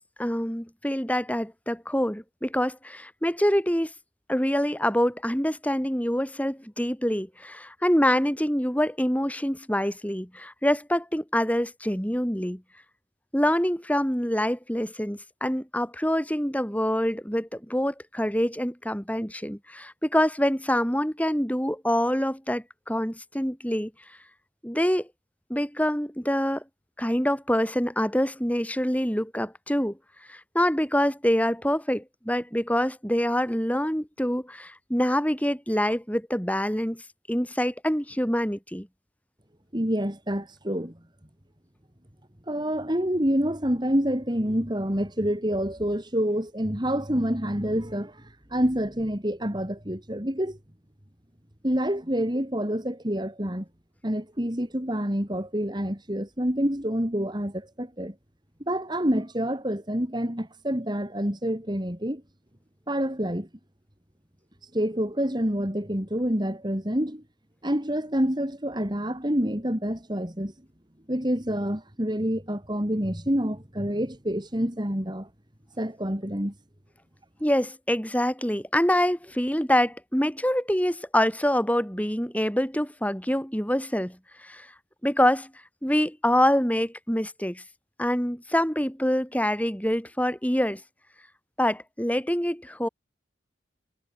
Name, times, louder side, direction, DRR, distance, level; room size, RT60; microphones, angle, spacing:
voice 1, 0.2-3.9 4.3-12.6 13.3-23.9 24.6-25.1 25.5-26.6 27.0-30.0 30.3-37.0 37.3-38.9 77.4-84.7 85.0-85.5 85.8-87.6 88.0-90.8 91.6-92.9, equal, 10° left, 5.4 m, -25 dB
voice 2, 39.7-40.9 42.5-50.6 51.6-53.7 54.0-58.1 58.7-62.2 62.9-63.5 64.7-67.2 67.6-70.5 71.1-75.3 75.8-76.5, equal, 20° right, 3.6 m, -27 dB
head